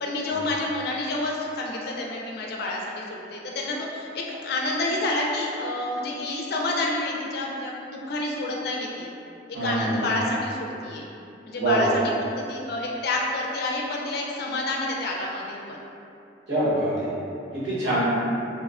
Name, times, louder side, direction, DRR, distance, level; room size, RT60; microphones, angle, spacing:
voice 1, 0.0-9.1 9.5-11.1 11.5-11.9 12.2-15.8, left 2 dB, 55° left, -2 dB, 0.3 m, -29 dB
voice 2, 9.5-10.1 11.5-11.9 16.5-17.1 17.5-18.0, right 1 dB, 65° right, -10 dB, 1.0 m, -24 dB
2.9 x 2.1 x 2.3 m, 2.7 s
head